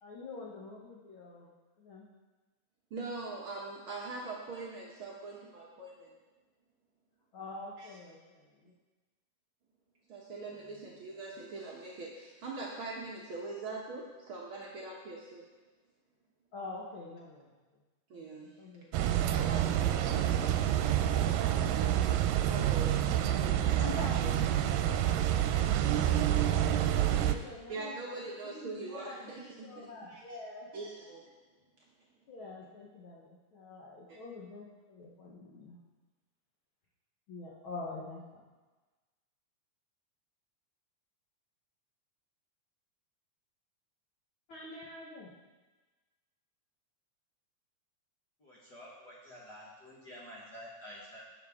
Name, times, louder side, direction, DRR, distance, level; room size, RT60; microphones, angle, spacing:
voice 1, 0.0-1.5 1.8-2.1 7.3-8.7 16.5-17.5 18.1-18.9 19.4-21.7 23.8-26.1 26.3-28.0 28.4-30.7 32.3-35.8 37.3-38.4 44.5-45.3, left 3 dB, 75° left, -4 dB, 1.2 m, -46 dB
voice 2, 2.9-6.2 7.8-7.9 10.1-15.5 18.1-18.5 19.2-20.0 22.4-23.2 26.0-26.1 27.7-30.4 30.7-31.2, right 3 dB, 70° right, -3 dB, 1.2 m, -42 dB
sound 1, 18.9-27.3, right 11 dB, 85° right, 2.2 m, -28 dB
voice 3, 48.4-51.2, equal, 45° left, -5 dB, 1.4 m, -49 dB
11.0 x 7.2 x 3.6 m, 1.3 s
omnidirectional pair, 3.9 m